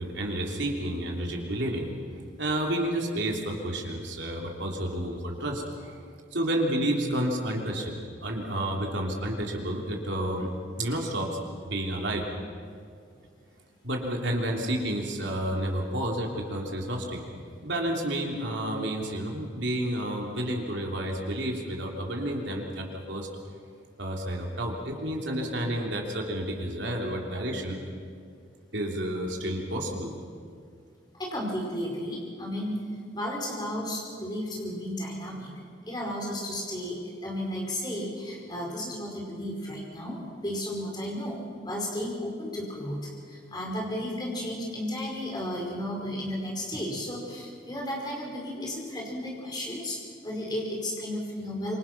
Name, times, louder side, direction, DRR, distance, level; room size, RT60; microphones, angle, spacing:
voice 1, 0.0-1.9 2.4-6.0 6.3-10.5 10.8-12.2 13.8-17.2 17.6-23.3 24.0-27.8 28.7-30.1, right 1 dB, 70° right, 0 dB, 3.4 m, -30 dB
voice 2, 31.2-32.8 33.1-35.5 35.9-41.4 41.6-43.0 43.5-50.0 50.2-51.8, left 1 dB, 20° left, -2 dB, 5.1 m, -33 dB
26.5 x 24.5 x 6.1 m, 2.3 s
head